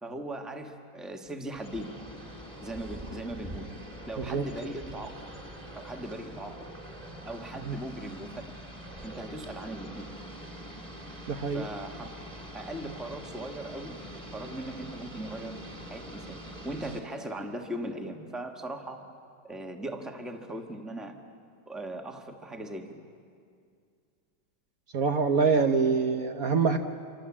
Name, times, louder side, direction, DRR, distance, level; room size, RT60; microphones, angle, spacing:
voice 1, 0.0-1.9 2.6-3.7 4.1-5.1 5.7-6.7 7.2-8.4 9.0-10.1 11.5-12.1 12.5-14.0 14.3-15.5 15.9-19.0 19.4-21.1 21.7-23.0, right 1 dB, ahead, 4 dB, 1.3 m, -39 dB
sound 1, 1.5-17.0, equal, 20° right, 2.7 m, -44 dB
voice 2, 11.3-11.7 24.9-26.8, right 5 dB, 60° right, 6 dB, 1.3 m, -25 dB
27.0 x 24.5 x 7.4 m, 2.3 s
omnidirectional pair, 1.9 m